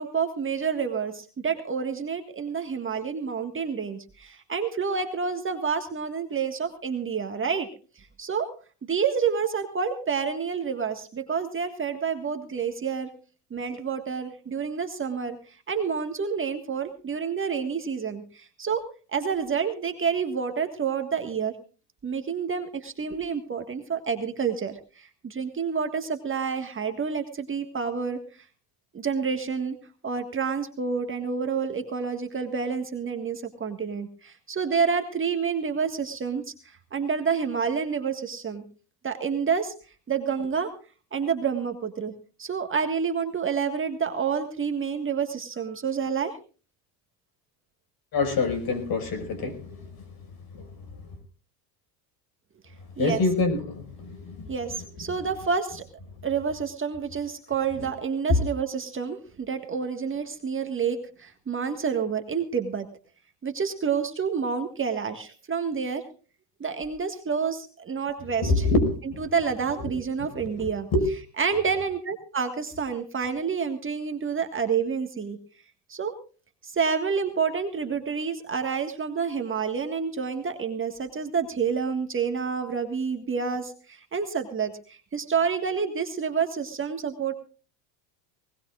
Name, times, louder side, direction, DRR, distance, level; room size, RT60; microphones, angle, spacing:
voice 1, 0.0-7.7 8.0-8.5 8.8-13.1 13.5-21.5 22.0-28.2 28.9-29.8 30.0-38.6 39.0-39.7 40.1-40.7 41.1-42.1 42.4-46.4 53.0-53.2 54.5-55.9 56.2-62.9 63.4-66.1 66.6-68.7 69.2-70.9 71.4-75.4 75.9-76.2 76.6-87.3, right 6 dB, 25° right, 5 dB, 1.7 m, -28 dB
voice 2, 48.1-50.0 50.5-50.7 53.0-54.5 57.8-57.9 68.4-69.2 70.4-71.0, left 3 dB, 45° left, 9 dB, 5.7 m, -26 dB
20.5 x 20.0 x 2.5 m, 0.36 s
supercardioid pair, 105°, 50 cm